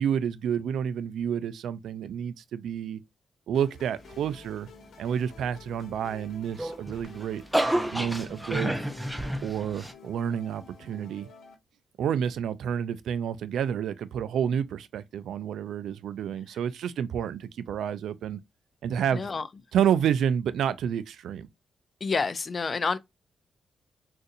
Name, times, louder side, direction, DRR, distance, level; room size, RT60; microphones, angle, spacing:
voice 1, 0.0-3.0 3.5-4.7 5.0-7.4 7.9-8.7 9.4-11.3 12.0-18.4 18.8-19.3 19.7-21.5, right 8 dB, 80° right, 0.3 m, -29 dB
sound 1, 3.5-11.5, left 6 dB, 75° left, 1.1 m, -52 dB
sound 2, 6.5-9.9, right 1 dB, 5° right, 0.6 m, -29 dB
voice 2, 19.1-19.5 22.0-23.0, left 4 dB, 40° left, 0.4 m, -28 dB
3.8 x 2.5 x 2.6 m
cardioid pair, 75°, 0 cm